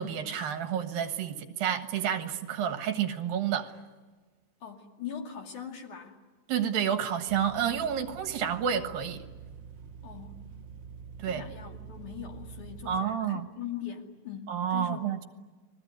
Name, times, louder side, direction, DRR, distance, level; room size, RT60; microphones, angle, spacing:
voice 1, 0.0-3.7 6.5-9.2 11.2-11.5 12.9-13.5 14.5-15.3, right 8 dB, 75° right, 3.1 m, -30 dB
voice 2, 4.6-6.2 10.0-10.4 11.2-15.1, left 8 dB, 60° left, 3.8 m, -41 dB
sound 1, 7.3-13.0, right 6 dB, 45° right, 1.6 m, -46 dB
30.0 x 21.0 x 9.6 m
omnidirectional pair, 4.1 m